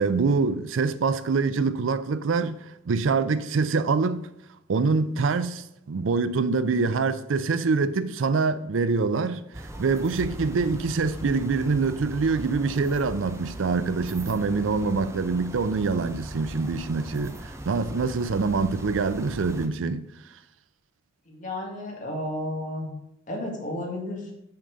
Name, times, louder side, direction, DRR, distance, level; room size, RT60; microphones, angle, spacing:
voice 1, 0.0-4.3 4.7-9.4 9.8-20.0, right 4 dB, 85° right, 0.5 m, -25 dB
sound 1, 9.5-19.7, right 1 dB, 15° right, 0.6 m, -39 dB
voice 2, 21.3-22.9 23.3-24.3, left 1 dB, 40° left, 1.7 m, -32 dB
5.8 x 5.4 x 5.0 m
head